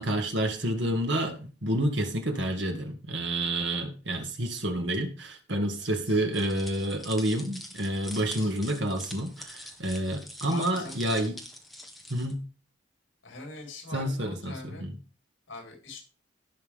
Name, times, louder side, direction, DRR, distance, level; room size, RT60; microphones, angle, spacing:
voice 1, 0.0-11.4 12.1-12.4 13.9-15.0, right 1 dB, 65° right, 2.1 m, -29 dB
voice 2, 5.8-6.2 8.1-8.5 10.5-11.2 13.2-14.8 15.5-16.0, left 3 dB, 75° left, 5.0 m, -43 dB
sound 1, 6.3-12.3, equal, ahead, 1.6 m, -44 dB
17.0 x 6.1 x 3.7 m
head